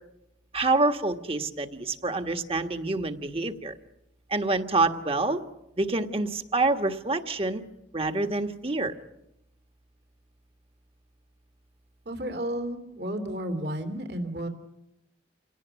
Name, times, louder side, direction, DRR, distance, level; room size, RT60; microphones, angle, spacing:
voice 1, 0.5-3.7 4.3-5.4 5.8-7.6 7.9-8.9, right 3 dB, 30° right, 7 dB, 1.6 m, -27 dB
voice 2, 12.0-14.5, right 1 dB, 60° right, 7 dB, 3.0 m, -32 dB
28.5 x 18.5 x 9.3 m, 0.86 s
head